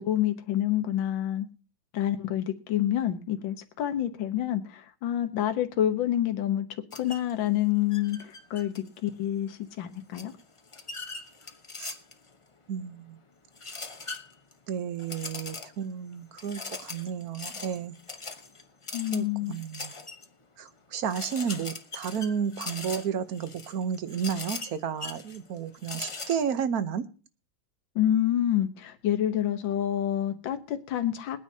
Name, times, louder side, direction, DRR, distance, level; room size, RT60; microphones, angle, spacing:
voice 1, 0.0-1.5 1.9-6.7 6.9-10.3 18.9-19.5 28.0-31.4, left 11 dB, 70° left, 8 dB, 1.8 m, -28 dB
sound 1, 6.9-7.3 7.9-9.1 10.1-12.3 13.5-14.5 15.0-15.8 16.4-20.2 20.7-20.8 21.1-26.4, left 3 dB, 50° left, 0.3 m, -40 dB
voice 2, 12.7-13.2 14.7-17.9 19.1-19.9 20.6-27.1, right 7 dB, 55° right, 12 dB, 1.1 m, -32 dB
22.5 x 9.5 x 2.8 m, 0.36 s
omnidirectional pair, 2.2 m